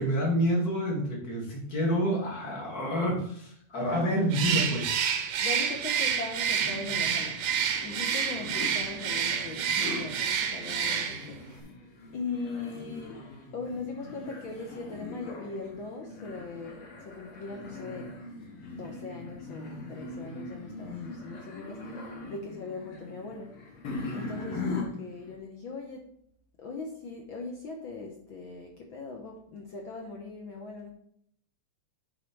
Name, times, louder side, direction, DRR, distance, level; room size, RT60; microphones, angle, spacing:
voice 1, 0.0-5.1, equal, 30° left, -1 dB, 2.3 m, -28 dB
Bird, 4.3-11.4, right 7 dB, 75° right, 1.3 m, -29 dB
voice 2, 5.4-11.7 12.1-18.1 18.7-23.5 24.1-26.1 26.6-30.9, left 4 dB, 70° left, 1 dB, 1.2 m, -40 dB
sound 1, 6.6-25.4, left 2 dB, 55° left, 2.1 m, -41 dB
8.7 x 4.8 x 4.5 m, 0.67 s
omnidirectional pair, 3.5 m